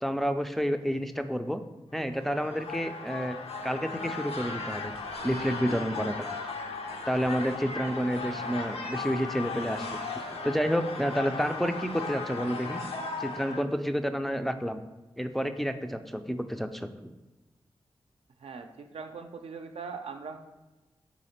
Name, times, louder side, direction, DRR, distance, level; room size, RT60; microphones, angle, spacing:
voice 1, 0.0-1.6 1.9-3.4 3.6-4.9 5.2-6.2 7.1-9.9 10.1-12.8 13.2-14.8 15.2-17.1, equal, ahead, 7 dB, 0.3 m, -30 dB
sound 1, 2.0-13.6, left 4 dB, 75° left, 0.5 m, -37 dB
voice 2, 18.4-20.4, right 5 dB, 75° right, 5 dB, 0.4 m, -41 dB
4.0 x 2.8 x 4.2 m, 1.1 s
cardioid pair, 60°, 10 cm